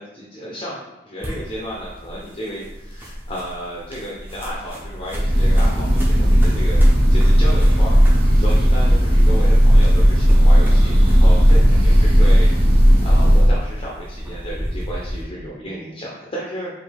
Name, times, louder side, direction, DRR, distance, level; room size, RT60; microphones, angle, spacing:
voice 1, 0.0-6.8 7.1-8.0 8.3-12.5 12.8-16.7, equal, 25° left, -5 dB, 0.7 m, -33 dB
sound 1, 1.2-15.2, equal, 10° right, 0.8 m, -29 dB
Breathing / Bird, 5.1-13.6, equal, 50° right, 0.9 m, -14 dB
5.2 x 2.7 x 3.4 m, 1.0 s
head